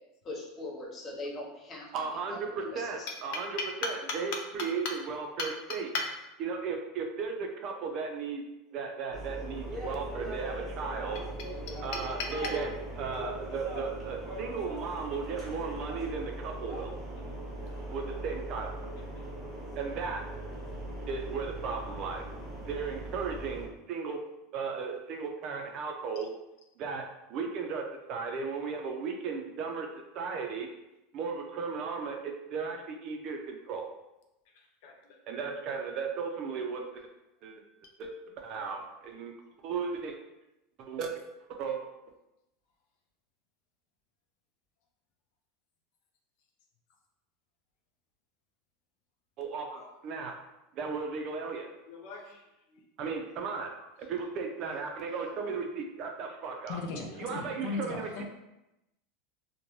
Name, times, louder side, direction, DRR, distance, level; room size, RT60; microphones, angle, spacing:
voice 1, 0.2-1.9 2.3-3.1, left 2 dB, 30° left, -3 dB, 0.7 m, -41 dB
voice 2, 1.9-5.9 6.4-8.5 8.7-11.2 11.8-12.7 13.0-17.0 17.9-18.7 19.7-20.2 21.1-22.3 22.6-24.2 24.5-26.3 26.8-29.9 30.1-30.7 31.1-33.9 35.3-37.1 37.4-37.6 38.0-39.3 39.6-40.2 40.8-41.1 41.5-41.8 49.4-50.3 50.7-51.7 53.0-53.7 54.0-56.8 57.2-58.2, right 5 dB, 45° right, 3 dB, 0.4 m, -36 dB
sound 1, 9.1-23.7, right 1 dB, 5° right, 0.8 m, -39 dB
voice 3, 51.9-52.4 54.2-54.3 55.0-55.1 55.4-55.5 56.7-58.2, left 4 dB, 65° left, 2 dB, 0.5 m, -37 dB
2.6 x 2.1 x 3.1 m, 0.92 s
supercardioid pair, 145°, 0 cm